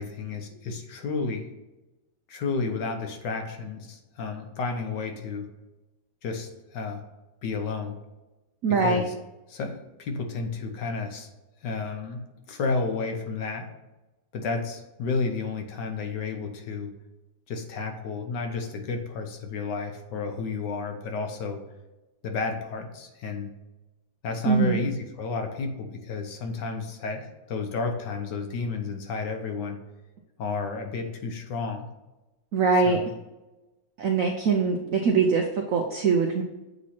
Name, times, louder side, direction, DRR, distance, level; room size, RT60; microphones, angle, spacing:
voice 1, 0.0-1.5 2.3-5.5 6.2-7.0 7.4-8.0 8.7-9.1 9.5-11.3 11.6-13.7 14.3-16.9 17.5-21.6 22.2-23.5 24.2-29.8 30.4-31.9 32.8-33.1, left 4 dB, 65° left, 4 dB, 1.4 m, -31 dB
voice 2, 8.6-9.0 24.4-24.8 32.5-33.0 34.0-36.4, right 5 dB, 75° right, 3 dB, 0.7 m, -23 dB
8.1 x 3.0 x 4.2 m, 1.1 s
omnidirectional pair, 2.1 m